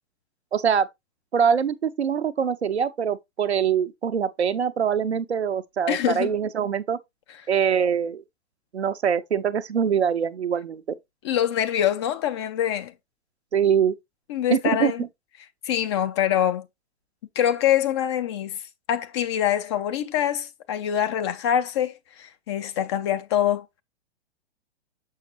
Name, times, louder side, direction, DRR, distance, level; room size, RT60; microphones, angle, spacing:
voice 1, 0.5-0.9 1.3-7.0 7.5-8.2 8.7-10.8 13.5-13.9 14.5-15.1, right 7 dB, 70° right, 0.7 m, -23 dB
voice 2, 5.9-6.3 11.2-12.9 14.3-15.0 15.6-16.7 17.4-18.6 18.9-23.6, left 10 dB, 25° left, 0.5 m, -24 dB
6.5 x 6.5 x 2.3 m
figure-of-eight pair, 110°, 34 cm